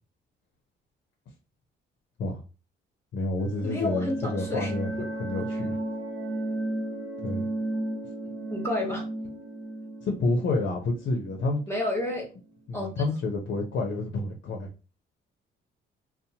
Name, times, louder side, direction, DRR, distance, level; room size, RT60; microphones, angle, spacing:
voice 1, 3.1-4.9 5.2-5.8 7.2-7.4 10.0-11.6 12.7-14.7, left 2 dB, 65° left, 0.6 m, -29 dB
sound 1, 3.4-12.0, right 1 dB, 85° right, 0.6 m, -34 dB
voice 2, 3.6-4.7 5.0-5.1 8.5-9.0 11.7-12.3 12.7-13.0, left 2 dB, 15° left, 1.0 m, -30 dB
2.7 x 2.0 x 2.7 m
cardioid pair, 90°, 20 cm